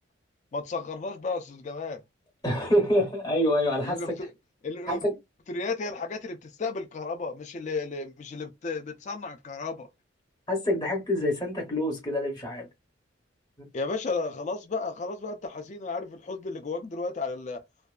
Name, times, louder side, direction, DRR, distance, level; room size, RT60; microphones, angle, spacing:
voice 1, 0.5-2.0 3.8-4.3 4.6-5.0 5.5-9.9 13.7-17.6, left 3 dB, 35° left, 0.3 m, -33 dB
voice 2, 2.4-4.2 4.9-5.2 10.5-12.7, equal, 20° left, 0.7 m, -26 dB
2.6 x 2.2 x 2.3 m
head